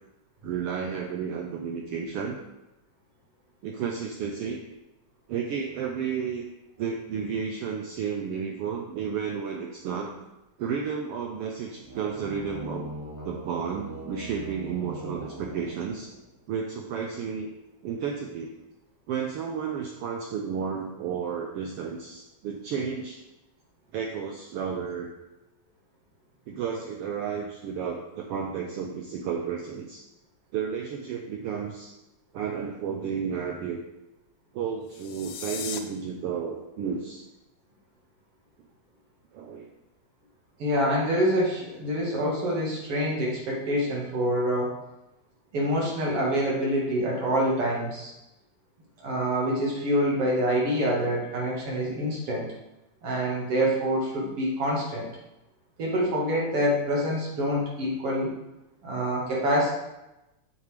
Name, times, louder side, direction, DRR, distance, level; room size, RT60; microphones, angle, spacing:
voice 1, 0.4-2.4 3.6-4.6 5.3-6.5 6.8-10.1 10.6-12.9 13.2-16.1 16.5-17.5 17.8-18.5 19.1-23.2 23.9-25.1 26.5-30.0 30.5-31.9 32.3-33.8 34.5-37.2 39.3-39.7, right 6 dB, 85° right, 2 dB, 1.3 m, -32 dB
sound 1, 11.7-16.4, right 1 dB, 5° right, 2.1 m, -41 dB
sound 2, 34.8-35.8, left 9 dB, 85° left, 2.0 m, -37 dB
voice 2, 40.6-44.8 45.5-48.1 49.0-52.5 53.0-55.1 55.8-58.3 58.8-59.7, equal, 55° right, -4 dB, 2.6 m, -26 dB
8.1 x 7.3 x 3.4 m, 0.95 s
omnidirectional pair, 3.3 m